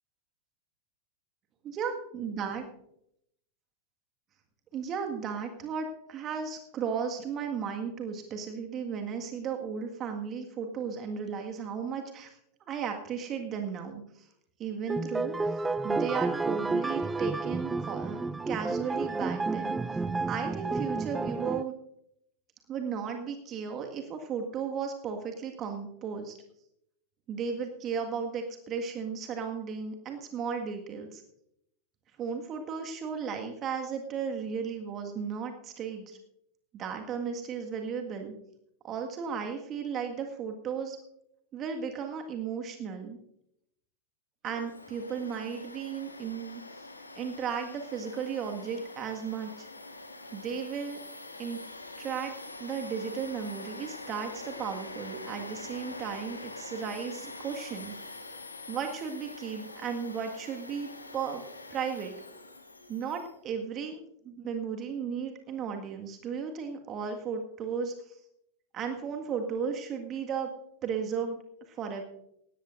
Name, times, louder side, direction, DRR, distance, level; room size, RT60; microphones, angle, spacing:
voice 1, 1.6-2.6 4.7-12.3 12.7-14.0 14.6-15.4 15.8-19.7 20.3-21.7 22.7-26.4 27.3-31.2 32.2-36.2 36.7-38.3 38.8-41.0 41.5-43.2 44.4-46.6 47.1-49.7 50.3-51.0 51.4-51.6 52.0-52.3 52.6-57.9 58.7-61.4 61.7-62.1 62.9-67.9 68.7-70.5 70.8-71.4 71.8-72.0, right 6 dB, 30° right, 4 dB, 1.7 m, -35 dB
sound 1, 14.9-21.6, right 3 dB, 10° right, 0.4 m, -31 dB
Domestic sounds home sounds, 44.4-63.3, left 2 dB, 80° left, 1.4 m, -45 dB
19.0 x 17.5 x 2.6 m, 0.77 s
figure-of-eight pair, 90°, 0 cm